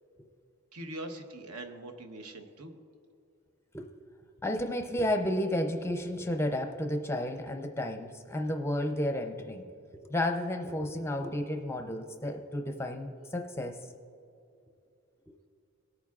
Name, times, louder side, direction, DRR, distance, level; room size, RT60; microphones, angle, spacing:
voice 1, 0.7-2.8, right 1 dB, 75° right, 6 dB, 1.0 m, -42 dB
voice 2, 4.4-9.6 10.0-13.8 15.3-15.4, left 1 dB, 10° left, 4 dB, 0.5 m, -32 dB
18.0 x 8.9 x 2.4 m, 2.5 s
head